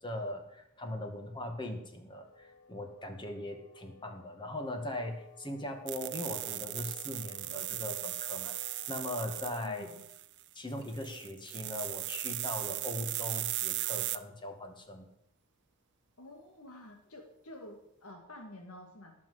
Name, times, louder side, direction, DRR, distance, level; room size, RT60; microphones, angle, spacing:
voice 1, 0.0-9.9 10.5-15.1, left 1 dB, 20° left, 4 dB, 2.0 m, -40 dB
sound 1, 2.1-9.7, left 3 dB, 55° left, 1.4 m, -57 dB
sound 2, 5.9-10.4 10.8-14.2, right 16 dB, 55° right, 0.6 m, -37 dB
voice 2, 9.6-10.0 16.2-19.1, left 1 dB, 85° left, 2 dB, 2.2 m, -50 dB
18.0 x 6.1 x 7.8 m, 0.78 s
head